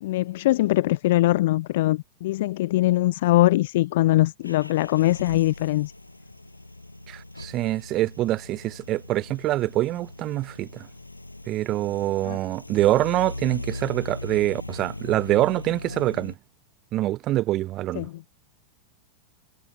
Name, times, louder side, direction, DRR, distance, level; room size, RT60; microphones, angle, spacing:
voice 1, 0.0-5.9 12.2-12.4 17.9-18.2, left 16 dB, 55° left, 0.4 m, -22 dB
sound 1, 4.4-16.4, left 2 dB, 85° left, 7.4 m, -39 dB
voice 2, 7.1-10.9 11.5-16.3 16.9-18.1, right 15 dB, 35° right, 0.3 m, -25 dB
figure-of-eight pair, 90°, 0 cm